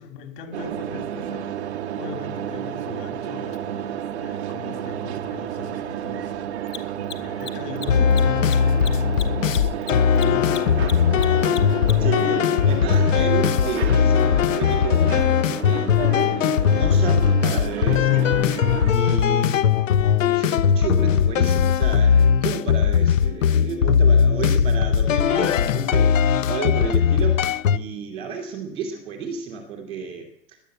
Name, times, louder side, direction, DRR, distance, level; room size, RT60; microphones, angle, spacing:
voice 1, 0.0-6.5 6.8-11.4, left 6 dB, 30° left, 2.4 m, -40 dB
sound 1, 0.5-18.9, right 10 dB, 45° right, 0.9 m, -31 dB
Mechanisms, 3.5-3.6 6.6-12.2, left 8 dB, 70° left, 1.8 m, -37 dB
sound 2, 7.9-27.8, left 7 dB, 55° left, 0.7 m, -19 dB
voice 2, 12.0-15.2 15.6-16.0 16.3-18.4 18.9-19.9 20.2-26.2 26.5-30.3, right 5 dB, 5° right, 0.5 m, -31 dB
18.0 x 10.0 x 7.8 m
hypercardioid pair, 165°, 48 cm